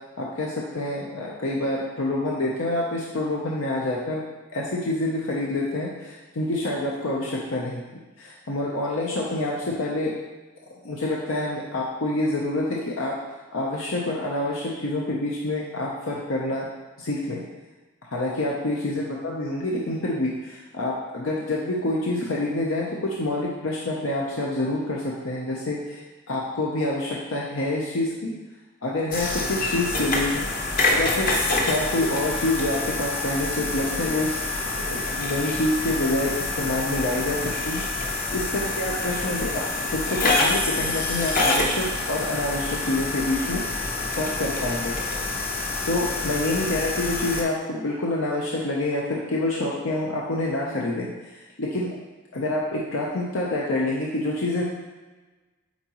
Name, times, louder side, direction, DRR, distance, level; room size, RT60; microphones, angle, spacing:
voice 1, 0.2-4.2 4.5-10.2 10.8-13.1 13.5-16.7 17.0-17.4 18.1-26.0 26.3-28.3 28.8-30.5 31.0-31.3 31.6-43.6 44.1-45.0 45.8-51.1 51.6-51.9 52.3-54.6, left 1 dB, 70° left, -4 dB, 0.8 m, -27 dB
sound 1, 29.1-47.4, left 2 dB, 40° left, 0.9 m, -27 dB
8.4 x 4.1 x 3.1 m, 1.2 s
head